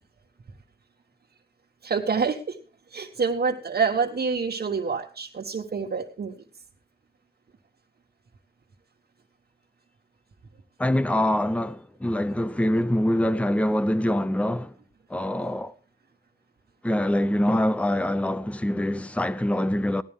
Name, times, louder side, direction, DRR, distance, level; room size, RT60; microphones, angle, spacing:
voice 1, 1.8-2.5 2.9-6.3, right 5 dB, 75° right, 1.4 m, -27 dB
voice 2, 10.8-14.7 15.1-15.7 16.8-20.0, left 1 dB, 10° left, 0.6 m, -24 dB
15.5 x 11.5 x 3.7 m
wide cardioid pair, 115°, 17 cm